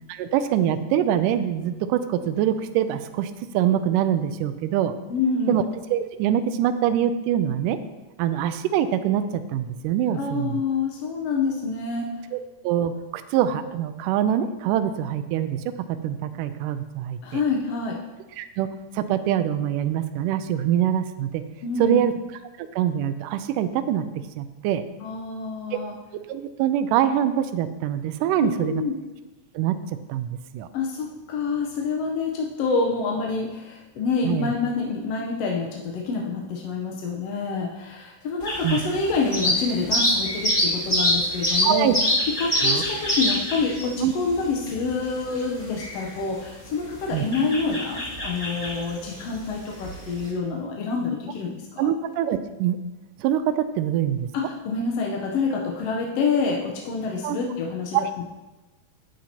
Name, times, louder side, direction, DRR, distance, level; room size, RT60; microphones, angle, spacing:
voice 1, 0.1-4.9 5.5-5.6 5.9-7.8 8.2-10.6 12.3-12.4 12.6-17.4 18.4-18.7 18.9-21.4 21.8-22.1 22.6-24.0 24.4-24.8 25.7-25.8 26.3-28.8 29.6-29.8 30.1-30.3 30.5-30.7 34.2-34.5 38.6-38.8 41.6-42.0 42.6-42.8 44.0-44.1 47.1-47.2 51.8-52.8 53.2-54.3 57.2-57.4 57.9-58.1, right 10 dB, 85° right, 11 dB, 2.1 m, -24 dB
voice 2, 5.1-5.6 10.1-12.2 17.2-18.0 21.6-22.1 25.0-25.9 28.4-28.9 30.7-41.9 42.3-51.9 54.3-58.2, left 4 dB, 70° left, 0 dB, 1.6 m, -27 dB
sound 1, 38.4-50.3, left 1 dB, 15° left, 2.5 m, -26 dB
10.5 x 9.2 x 2.9 m, 1.1 s
omnidirectional pair, 3.7 m